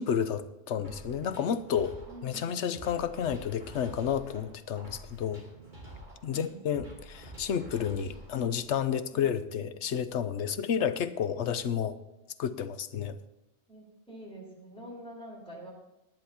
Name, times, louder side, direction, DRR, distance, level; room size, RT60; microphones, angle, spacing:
voice 1, 0.0-2.0 2.2-5.4 6.2-12.0 12.4-13.2, left 8 dB, 85° left, 12 dB, 1.0 m, -31 dB
sound 1, 0.8-8.8, right 1 dB, 45° right, 3.0 m, -48 dB
voice 2, 2.1-2.7 6.3-6.6 9.1-9.7 13.7-15.7, right 1 dB, 5° left, -5 dB, 4.3 m, -47 dB
18.5 x 10.5 x 2.9 m, 0.96 s
omnidirectional pair, 1.2 m